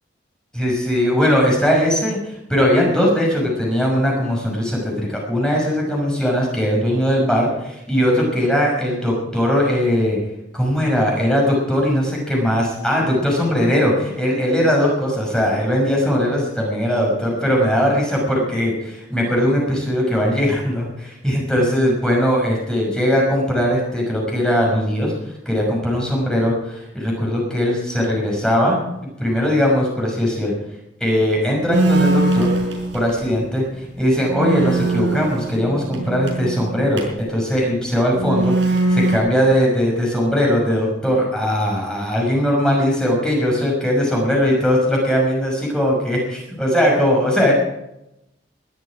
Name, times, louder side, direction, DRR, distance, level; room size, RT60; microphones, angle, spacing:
voice 1, 0.5-10.2 10.5-25.1 25.5-28.8 29.2-30.5 31.0-32.5 32.9-38.5 38.9-47.5, equal, 5° left, -2 dB, 5.8 m, -19 dB
sound 1, 31.7-33.3 33.8-33.9 34.2-37.3 38.1-39.2, right 2 dB, 90° right, 5.5 m, -21 dB
20.5 x 13.0 x 5.0 m, 0.85 s
head